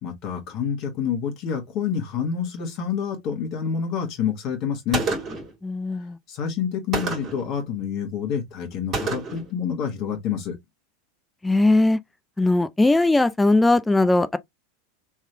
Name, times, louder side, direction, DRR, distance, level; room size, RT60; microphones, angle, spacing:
voice 1, 0.0-5.0 6.3-10.6, left 7 dB, 45° left, 1.5 m, -28 dB
Gunshot gunfire, 4.9-5.5 6.9-7.5 8.9-9.5, right 3 dB, 35° right, 2.0 m, -28 dB
voice 2, 5.6-6.2 11.4-12.0 12.4-14.4, left 2 dB, 10° left, 0.4 m, -19 dB
3.5 x 3.1 x 2.9 m
figure-of-eight pair, 85°, 0 cm